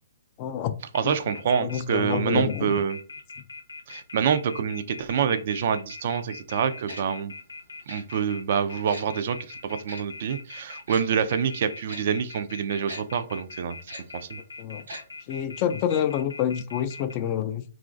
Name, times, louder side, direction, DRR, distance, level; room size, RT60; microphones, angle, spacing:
voice 1, 0.4-0.7 1.0-1.2 1.6-2.8 14.6-14.8 15.3-17.6, left 9 dB, 35° left, 0.3 m, -28 dB
sound 1, 0.9-17.1, left 4 dB, 85° left, 0.6 m, -41 dB
voice 2, 0.9-3.0 3.9-7.3 7.9-13.8 14.1-14.4, right 7 dB, 55° right, 0.3 m, -26 dB
Tick-tock, 6.9-7.0 7.9-8.0 8.9-9.0 9.9-10.0 10.9-11.0 11.9-12.0 12.9-13.0 13.9-14.0 14.9-15.0 15.3-15.4, right 2 dB, 75° right, 1.0 m, -40 dB
3.0 x 2.4 x 2.5 m
hypercardioid pair, 130°, 0 cm